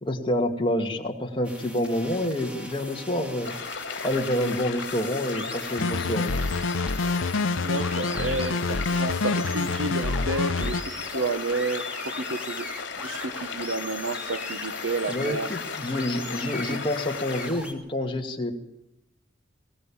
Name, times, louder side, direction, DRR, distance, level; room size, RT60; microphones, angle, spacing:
voice 1, 0.0-3.5 4.0-6.3 15.1-18.5, left 1 dB, 25° left, 2 dB, 2.3 m, -28 dB
sound 1, 1.4-17.7, left 1 dB, 5° right, 2.9 m, -41 dB
sound 2, 3.4-17.5, left 5 dB, 60° left, 3.1 m, -36 dB
sound 3, 5.8-10.8, left 3 dB, 90° left, 0.8 m, -27 dB
voice 2, 7.6-12.7 13.0-15.5, right 2 dB, 75° right, 11 dB, 1.3 m, -31 dB
21.0 x 18.0 x 7.3 m, 0.84 s
head